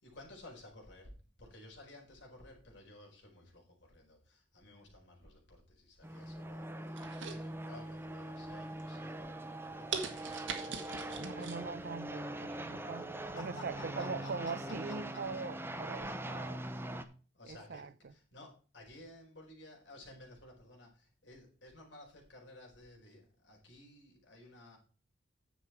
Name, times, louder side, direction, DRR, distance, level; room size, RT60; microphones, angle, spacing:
voice 1, 0.0-1.1 1.4-10.4 10.9-11.7 13.2-15.2 16.0-16.6 17.3-24.8, left 1 dB, 65° left, 4.6 m, -55 dB
sound 1, 6.0-17.1, right 1 dB, 10° right, 0.8 m, -42 dB
sound 2, 7.0-8.0 8.4-8.8 9.3-9.4 9.9-11.6 12.0-12.1, right 6 dB, 80° right, 1.7 m, -41 dB
voice 2, 11.2-16.7 17.5-18.1, right 4 dB, 55° right, 0.6 m, -42 dB
10.0 x 6.9 x 4.5 m
head